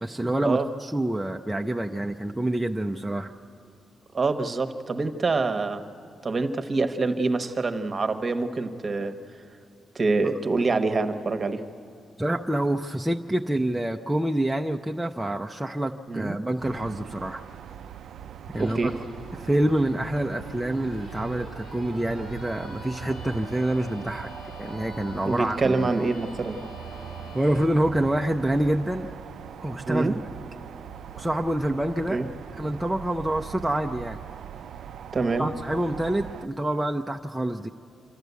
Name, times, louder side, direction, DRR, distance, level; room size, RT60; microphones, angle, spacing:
voice 1, 0.0-3.3 12.2-17.4 18.5-18.9 19.4-24.3 24.6-25.9 27.3-29.1 29.6-30.1 31.1-32.2 32.6-34.2 35.4-37.7, right 1 dB, 5° right, 2 dB, 0.5 m, -27 dB
voice 2, 4.1-5.8 6.2-9.1 9.9-11.6 16.1-16.4 18.6-18.9 25.2-26.6 29.9-30.1 32.1-32.3 35.1-35.5, right 3 dB, 35° right, 8 dB, 1.1 m, -25 dB
sound 1, 16.6-36.5, right 9 dB, 80° right, 0.4 m, -41 dB
sound 2, 18.5-27.7, left 3 dB, 65° left, 2.1 m, -46 dB
27.5 x 12.5 x 8.2 m, 2.6 s
cardioid pair, 125°, 0 cm